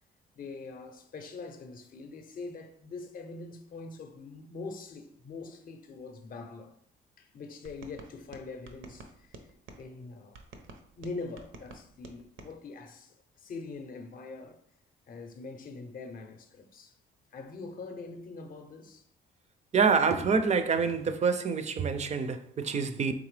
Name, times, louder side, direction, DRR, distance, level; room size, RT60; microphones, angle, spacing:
voice 1, 0.3-6.8 7.2-9.5 9.8-10.4 11.0-14.6 15.1-17.0 17.3-19.0 22.8-23.0, left 3 dB, 45° left, 0.6 m, -43 dB
sound 1, 7.6-9.8 10.3-12.5, right 3 dB, 75° right, 0.6 m, -50 dB
voice 2, 19.7-23.1, right 5 dB, 35° right, 0.4 m, -26 dB
3.8 x 3.2 x 3.2 m
cardioid pair, 90°, 20 cm